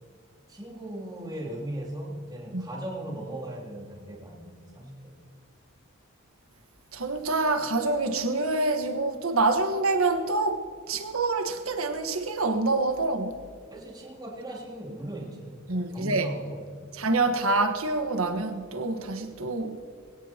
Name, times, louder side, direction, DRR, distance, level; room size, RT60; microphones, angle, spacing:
voice 1, 0.5-5.1 13.7-16.9, right 1 dB, 20° right, 3.0 m, -38 dB
voice 2, 6.9-13.4 15.7-16.3 16.9-19.8, right 3 dB, 80° right, 1.5 m, -26 dB
22.0 x 17.5 x 3.0 m
head